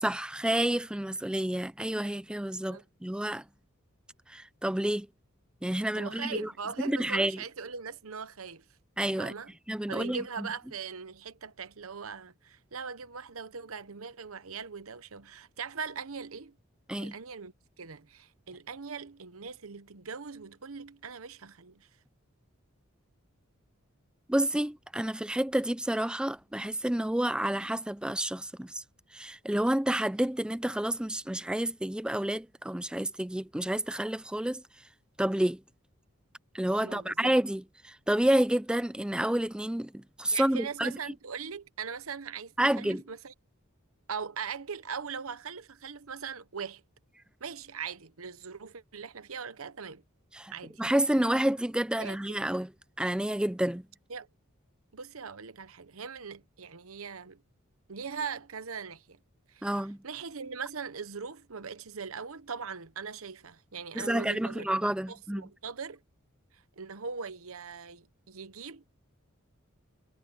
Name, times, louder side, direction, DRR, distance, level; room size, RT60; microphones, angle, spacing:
voice 1, 0.0-3.4 4.3-5.1 5.6-6.5 6.8-7.4 9.0-9.3 9.7-10.5 16.9-17.1 24.3-28.8 29.1-34.6 35.2-35.6 36.5-40.9 42.6-43.0 50.3-50.5 50.8-52.7 53.0-53.8 59.6-60.0 64.0-65.4, right 1 dB, 5° right, 0.4 m, -29 dB
voice 2, 5.9-8.6 9.2-9.5 9.9-16.5 17.0-21.9 36.8-37.3 40.3-43.3 44.1-46.8 47.4-50.0 50.5-50.8 52.0-52.4 54.1-54.3 54.9-57.4 57.9-59.2 59.5-64.7 65.1-66.0 66.5-68.8, right 6 dB, 85° right, 1.0 m, -40 dB
head